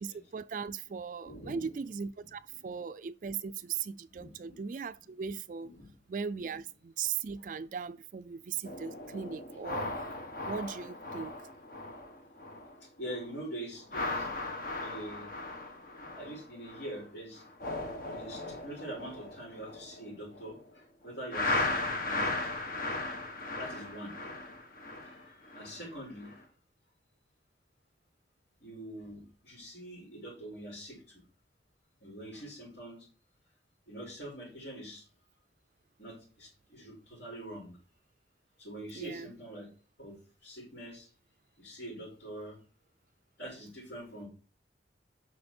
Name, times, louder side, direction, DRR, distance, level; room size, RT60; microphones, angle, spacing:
voice 1, 0.0-5.7 6.1-10.1 10.5-11.5 38.9-39.3, right 6 dB, 45° right, 0.3 m, -38 dB
voice 2, 1.2-1.8 2.2-2.6 4.0-4.6 5.6-5.9 6.5-6.6 12.8-14.3 14.8-15.3 16.0-17.4 18.0-22.3 23.6-24.2 24.8-26.5 28.6-31.2 32.0-33.1 33.9-35.1 36.0-37.8 38.6-39.7 40.0-41.1 41.6-42.6 43.4-44.3, right 1 dB, 70° left, 5.5 m, -44 dB
sound 1, 8.6-12.8 13.1-13.4 13.8-17.0 17.4-20.6 21.3-25.8 26.2-26.4, left 2 dB, 50° left, 1.4 m, -37 dB
9.5 x 6.1 x 4.4 m
head